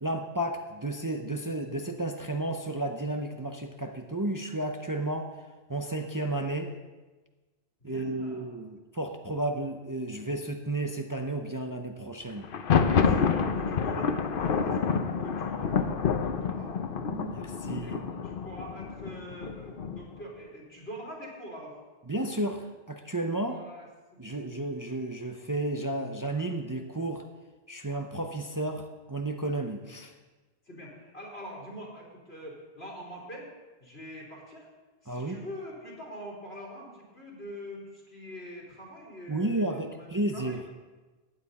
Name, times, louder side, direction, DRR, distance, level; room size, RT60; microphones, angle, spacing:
voice 1, 0.0-5.3 5.7-6.7 7.8-12.5 17.1-18.0 22.1-23.6 24.2-27.2 27.7-30.1 35.1-35.4 39.3-40.6, right 1 dB, 25° right, 4 dB, 0.6 m, -32 dB
voice 2, 7.8-8.6 12.8-16.7 17.8-18.0 18.2-21.8 23.4-24.4 30.7-33.5 33.8-34.7 35.0-40.6, equal, 85° left, -2 dB, 3.7 m, -44 dB
Thunder, 12.4-20.2, left 6 dB, 60° left, 0.9 m, -28 dB
15.5 x 9.7 x 4.1 m, 1.3 s
omnidirectional pair, 1.1 m